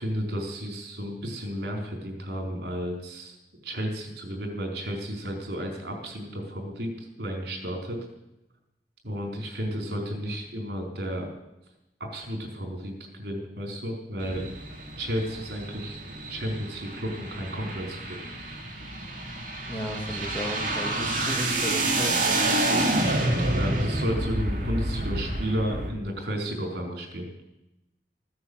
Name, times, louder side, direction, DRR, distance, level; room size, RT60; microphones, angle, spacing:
voice 1, 0.0-3.4 3.6-8.0 9.0-11.3 12.0-14.4 15.0-18.2 23.5-27.3, equal, 65° right, 2 dB, 4.5 m, -32 dB
sound 1, 14.2-25.9, right 1 dB, 50° right, 3.3 m, -28 dB
voice 2, 19.7-22.9, equal, 10° left, 0 dB, 2.8 m, -34 dB
15.5 x 9.6 x 8.1 m, 0.90 s
head